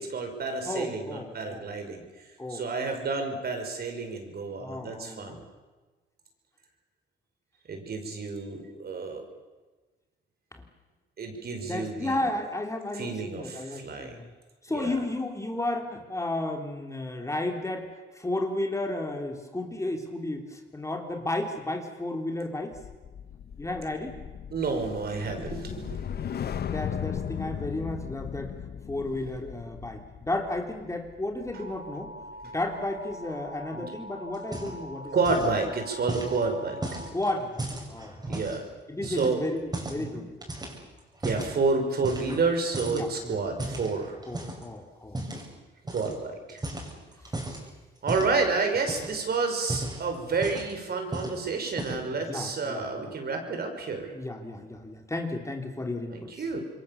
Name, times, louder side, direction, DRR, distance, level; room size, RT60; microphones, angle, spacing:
voice 1, 0.0-2.0 2.5-5.4 7.7-9.2 11.2-12.2 13.0-14.1 14.7-15.0 24.5-26.0 33.7-33.9 35.1-36.8 38.3-38.7 39.0-39.4 40.0-40.2 41.2-44.1 45.9-46.6 48.0-54.1 56.1-56.6, right 4 dB, 50° right, 4 dB, 5.6 m, -30 dB
voice 2, 0.6-1.7 2.4-2.7 4.6-5.4 10.5-10.7 11.6-14.3 14.6-22.8 23.6-24.2 26.4-28.5 28.9-32.1 32.5-35.5 37.1-38.4 38.9-40.3 42.8-43.4 44.3-45.2 47.2-47.4 52.3-53.1 54.1-56.4, left 2 dB, 15° left, 3 dB, 3.3 m, -33 dB
sound 1, 22.7-33.1 33.5-33.8, left 8 dB, 55° left, 1.1 m, -37 dB
sound 2, 31.5-37.1, equal, 85° right, 5.9 m, -44 dB
sound 3, 34.3-34.9 35.2-35.6 36.1-38.6 39.0-40.1 40.4-41.5 42.0-42.5 42.7-44.6 45.1-45.5 45.9-46.1 46.5-47.6 48.1-48.4 48.7-49.2 49.6-50.8 51.1-51.4 51.7-52.1, right 1 dB, 20° right, 7.0 m, -35 dB
27.0 x 22.5 x 7.1 m, 1.2 s
cardioid pair, 90°, 20 cm